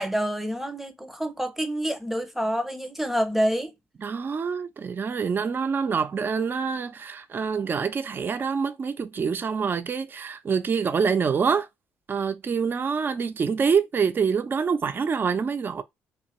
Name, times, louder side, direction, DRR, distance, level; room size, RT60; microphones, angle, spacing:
voice 1, 0.0-3.7, equal, 5° right, 0.7 m, -27 dB
voice 2, 4.0-11.7 12.1-15.8, right 6 dB, 40° right, 0.4 m, -26 dB
2.7 x 2.4 x 3.0 m
supercardioid pair, 60°, 6 cm